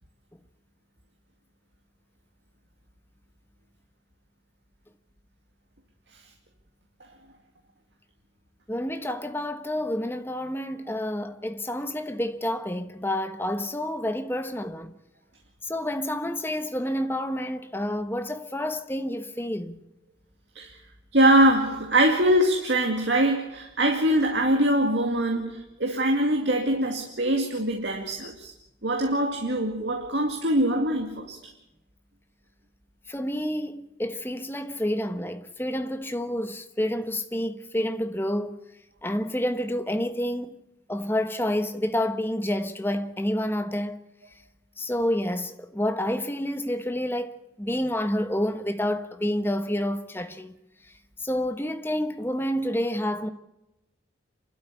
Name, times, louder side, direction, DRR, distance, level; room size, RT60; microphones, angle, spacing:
voice 1, 8.7-14.9 15.6-19.8 33.1-38.6 39.0-40.5 40.9-44.0 44.8-50.6 51.2-53.3, left 1 dB, 10° left, 1.2 m, -29 dB
voice 2, 21.1-28.5 28.8-31.4, right 1 dB, 70° right, 2.3 m, -23 dB
28.0 x 12.5 x 8.5 m
head